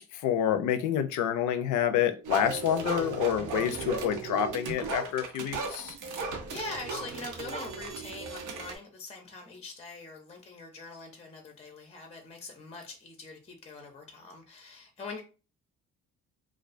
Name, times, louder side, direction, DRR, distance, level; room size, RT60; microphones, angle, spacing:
voice 1, 0.0-5.9, left 9 dB, 80° left, 9 dB, 0.5 m, -28 dB
sound 1, 2.2-8.8, right 4 dB, 85° right, 0.6 m, -36 dB
voice 2, 6.0-15.2, left 3 dB, 20° left, 3 dB, 0.5 m, -43 dB
2.3 x 2.3 x 2.4 m, 0.33 s
cardioid pair, 90°, 30 cm